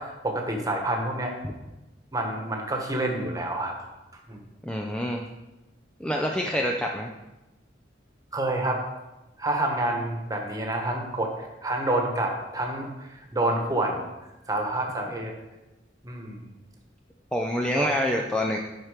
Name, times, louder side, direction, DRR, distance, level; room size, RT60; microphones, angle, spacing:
voice 1, 0.0-1.3 2.1-3.7 4.3-4.4 8.3-8.8 9.4-14.0 14.5-15.3 16.0-16.5 17.7-17.9, right 1 dB, 20° right, 2 dB, 1.3 m, -28 dB
voice 2, 4.6-5.2 6.0-7.1 17.3-18.6, equal, 5° left, 0 dB, 0.5 m, -26 dB
11.0 x 4.5 x 5.0 m, 1.0 s
head